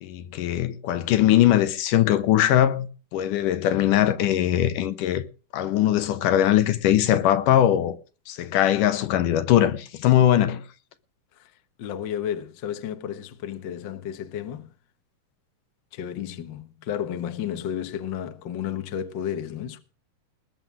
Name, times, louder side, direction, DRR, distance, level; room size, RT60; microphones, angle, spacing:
voice 1, 0.0-5.2 5.5-8.0 8.3-10.6, left 12 dB, 75° left, 2.5 m, -21 dB
voice 2, 11.8-14.7 15.9-19.8, left 9 dB, 60° left, 1.2 m, -32 dB
20.0 x 7.6 x 6.2 m
omnidirectional pair, 3.8 m